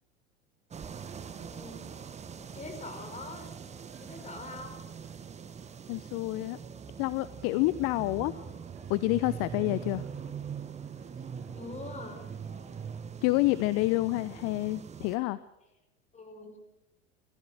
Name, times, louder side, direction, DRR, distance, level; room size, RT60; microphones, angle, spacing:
sound 1, 0.7-15.2, right 7 dB, 20° right, 1.4 m, -42 dB
sound 2, 0.7-13.0, right 3 dB, 65° right, 7.2 m, -58 dB
voice 1, 1.4-2.0 2.5-3.5 4.0-4.8 8.1-8.5 10.2-10.3 11.5-12.2 16.1-16.6, left 3 dB, 20° left, 6 dB, 4.7 m, -44 dB
voice 2, 5.9-6.6 7.0-8.3 8.9-10.0 13.2-15.4, left 19 dB, 40° left, 17 dB, 0.8 m, -28 dB
28.5 x 14.5 x 6.5 m, 0.85 s
figure-of-eight pair, 80°, 35 cm